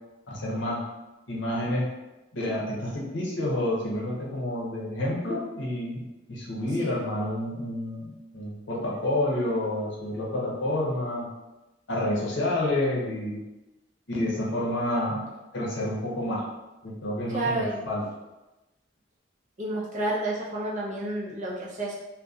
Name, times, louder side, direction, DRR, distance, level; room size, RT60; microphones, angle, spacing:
voice 1, 0.3-0.9 1.3-1.9 2.3-11.3 11.9-13.4 14.1-15.2 15.5-16.5 16.8-18.0, left 1 dB, 70° left, -4 dB, 0.7 m, -29 dB
voice 2, 17.3-17.8 19.6-21.9, right 1 dB, 40° right, -4 dB, 0.6 m, -30 dB
2.7 x 2.1 x 2.3 m, 1.0 s
head